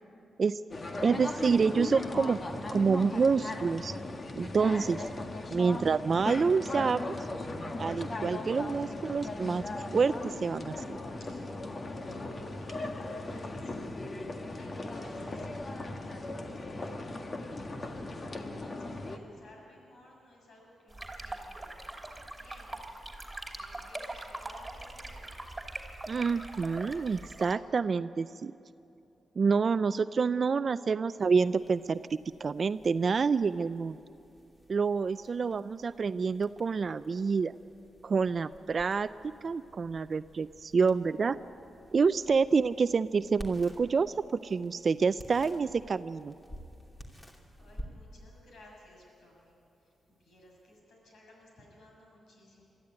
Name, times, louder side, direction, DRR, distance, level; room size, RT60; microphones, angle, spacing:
sound 1, 0.7-19.2, left 2 dB, 40° left, 1.7 m, -38 dB
voice 1, 1.0-2.4 2.7-4.0 4.4-5.1 5.5-7.2 7.8-9.6 9.9-11.0 26.1-28.5 29.4-32.0 32.4-34.0 34.7-37.5 38.0-41.4 41.9-46.3, right 5 dB, 50° right, 14 dB, 0.4 m, -28 dB
voice 2, 11.8-14.0 14.5-15.5 18.3-22.8 23.4-25.3 46.9-47.1 47.5-49.5 49.8-52.6, left 1 dB, 70° left, -1 dB, 6.7 m, -57 dB
sound 2, 20.9-27.5, right 2 dB, 10° right, 2.8 m, -42 dB
sound 3, 31.2-50.8, equal, 15° left, 2.9 m, -52 dB
22.0 x 13.5 x 9.8 m, 2.7 s
cardioid pair, 75°, 0 cm